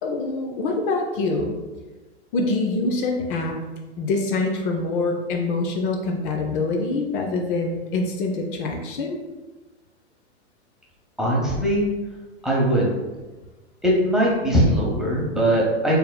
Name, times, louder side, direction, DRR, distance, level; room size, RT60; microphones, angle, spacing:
voice 1, 0.0-1.5 2.3-3.6 4.0-9.2, left 3 dB, 50° left, 2 dB, 0.6 m, -25 dB
voice 2, 11.2-11.9 12.4-12.9 13.8-16.0, right 1 dB, ahead, -5 dB, 0.8 m, -20 dB
4.3 x 3.4 x 2.2 m, 1.2 s
hypercardioid pair, 110°, 34 cm